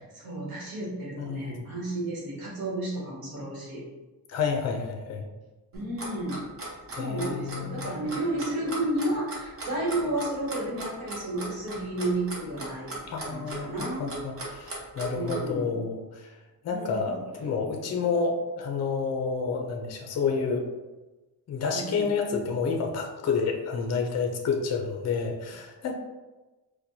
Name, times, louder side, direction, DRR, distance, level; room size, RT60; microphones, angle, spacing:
voice 1, 0.1-3.8 5.7-6.5 6.9-14.1 15.1-15.8 16.7-17.2 21.7-22.1, right 1 dB, 60° right, -5 dB, 1.3 m, -32 dB
voice 2, 1.2-1.7 4.3-5.2 7.0-7.9 13.1-16.3 16.6-20.7 21.5-25.9, left 5 dB, 40° left, 3 dB, 0.5 m, -29 dB
Clock, 5.7-15.4, right 2 dB, 35° right, 0.8 m, -37 dB
4.3 x 2.2 x 2.7 m, 1.1 s
wide cardioid pair, 150°, 40 cm